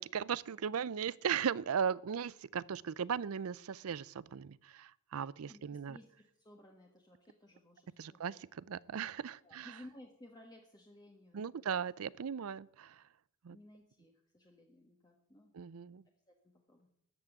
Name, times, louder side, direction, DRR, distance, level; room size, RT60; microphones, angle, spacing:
voice 1, 0.0-6.0 8.0-9.8 11.3-13.0 13.4-13.6 15.5-16.0, right 7 dB, 85° right, 0.5 m, -37 dB
voice 2, 5.5-6.0 6.4-8.2 9.4-11.4 13.5-15.5 16.3-16.9, left 1 dB, 20° left, 1.4 m, -57 dB
13.0 x 6.1 x 8.8 m
head